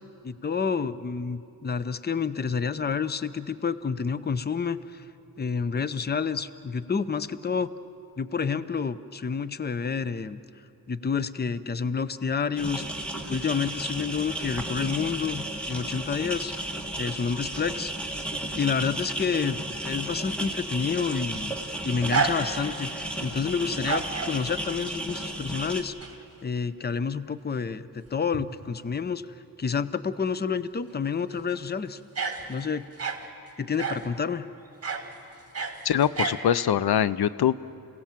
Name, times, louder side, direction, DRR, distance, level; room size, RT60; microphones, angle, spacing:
voice 1, 0.2-5.0 5.4-7.7 8.2-10.4 10.9-12.8 13.3-16.5 17.0-17.9 18.6-21.6 21.8-25.9 26.4-32.0 32.5-32.8 33.6-34.5, left 6 dB, 25° left, 14 dB, 0.6 m, -29 dB
sound 1, 12.6-25.8, right 1 dB, 5° left, 1.8 m, -34 dB
sound 2, 21.0-22.9 23.7-24.4 25.6-26.2 26.5-26.6 28.1-28.2 28.3-28.5 31.3-31.6 32.2-33.3 33.8-34.1 34.8-35.1 35.4-36.4, right 5 dB, 40° right, 1.8 m, -30 dB
voice 2, 35.8-37.6, left 9 dB, 80° left, 17 dB, 0.6 m, -23 dB
29.5 x 17.0 x 7.4 m, 2.7 s
wide cardioid pair, 115°, 38 cm